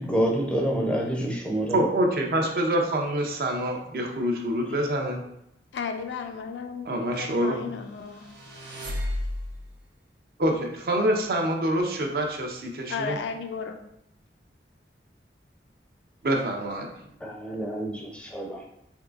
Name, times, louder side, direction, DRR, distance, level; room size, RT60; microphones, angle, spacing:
voice 1, 0.0-1.8 17.2-18.6, right 1 dB, 5° left, -1 dB, 0.4 m, -27 dB
voice 2, 1.7-5.2 6.9-7.6 10.4-13.2 16.2-16.9, right 1 dB, 55° right, 2 dB, 0.5 m, -26 dB
voice 3, 5.7-8.3 12.9-13.8, left 5 dB, 80° left, 6 dB, 0.4 m, -34 dB
sound 1, 8.0-9.8, left 1 dB, 85° right, 0.8 m, -33 dB
3.6 x 3.0 x 2.4 m, 0.78 s
head